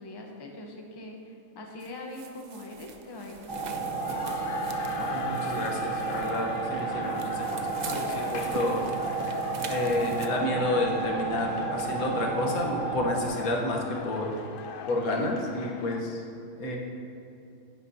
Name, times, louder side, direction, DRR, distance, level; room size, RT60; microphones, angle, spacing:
voice 1, 0.0-3.9, left 1 dB, 20° left, 1 dB, 0.8 m, -42 dB
sound 1, 1.8-10.3, right 5 dB, 70° right, 0.4 m, -44 dB
sound 2, 3.5-13.3, right 5 dB, 20° right, 1.2 m, -32 dB
sound 3, 3.6-16.0, left 5 dB, 65° left, 0.5 m, -40 dB
voice 2, 5.0-8.9 9.7-14.4 14.9-16.2 16.6-16.8, left 2 dB, 85° left, 0 dB, 1.6 m, -30 dB
10.0 x 9.8 x 2.8 m, 2.7 s
omnidirectional pair, 1.5 m